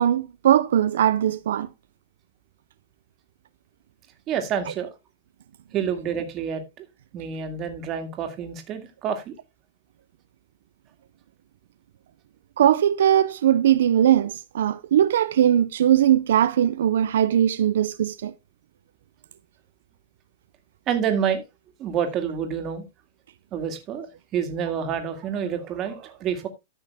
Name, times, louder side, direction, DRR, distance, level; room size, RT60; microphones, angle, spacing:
voice 1, 0.0-1.7 12.6-18.3, right 10 dB, 85° right, 0.5 m, -20 dB
voice 2, 4.3-4.9 5.7-6.9 7.1-9.4 20.9-21.4 21.8-22.8 23.5-24.1 24.3-26.5, right 8 dB, 30° right, 2.1 m, -28 dB
13.5 x 5.8 x 3.5 m
supercardioid pair, 155°, 0 cm